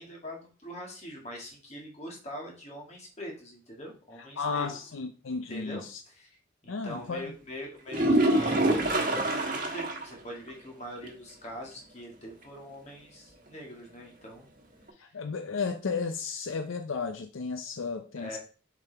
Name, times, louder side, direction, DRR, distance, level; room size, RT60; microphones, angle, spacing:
voice 1, 0.0-4.7 5.5-6.4 6.6-14.5 15.0-15.1 18.2-18.4, equal, 35° left, 1.9 m, -43 dB
voice 2, 4.4-6.0 6.7-7.3 15.0-18.4, left 5 dB, 75° left, 0.5 m, -33 dB
sound 1, 7.9-10.1 10.5-10.6 11.0-11.1 14.9-15.0, right 1 dB, 40° right, 1.3 m, -25 dB
7.0 x 4.8 x 3.4 m
head